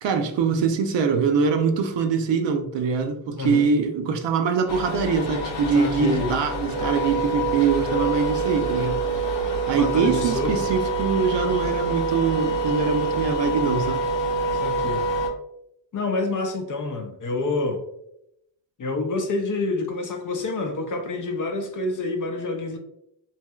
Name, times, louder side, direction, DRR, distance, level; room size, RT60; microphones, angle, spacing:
voice 1, 0.0-9.0 9.7-14.1, right 5 dB, 65° right, 0.5 m, -23 dB
voice 2, 3.4-3.7 5.7-6.3 9.7-10.7 14.5-15.2 15.9-17.8 18.8-22.8, left 3 dB, 40° left, 0.5 m, -27 dB
sound 1, 4.7-15.3, right 2 dB, 65° left, 0.8 m, -26 dB
3.1 x 2.8 x 2.2 m
cardioid pair, 100°, 48 cm